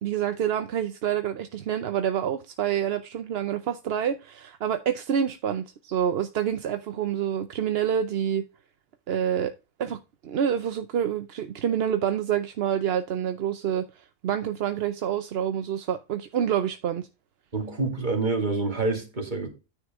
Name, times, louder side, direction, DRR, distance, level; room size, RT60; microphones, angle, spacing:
voice 1, 0.0-8.4 9.1-9.5 9.8-17.1, right 9 dB, 55° right, 0.8 m, -27 dB
voice 2, 17.5-19.5, right 3 dB, 35° right, 2.5 m, -27 dB
9.8 x 5.5 x 3.5 m
omnidirectional pair, 1.5 m